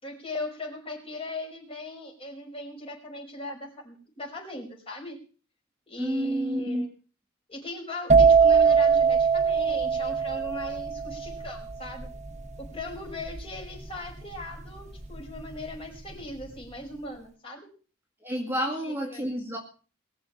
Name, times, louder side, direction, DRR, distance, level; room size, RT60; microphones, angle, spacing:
voice 1, 0.0-5.2 5.9-6.9 7.5-12.1 12.6-17.7 18.6-19.2, left 2 dB, 30° left, 1 dB, 5.6 m, -39 dB
voice 2, 6.0-6.9 18.2-19.6, equal, 10° right, 1 dB, 2.2 m, -29 dB
sound 1, 8.1-15.7 15.9-16.4, right 6 dB, 35° right, 1.3 m, -22 dB
20.5 x 6.9 x 8.6 m, 0.39 s
head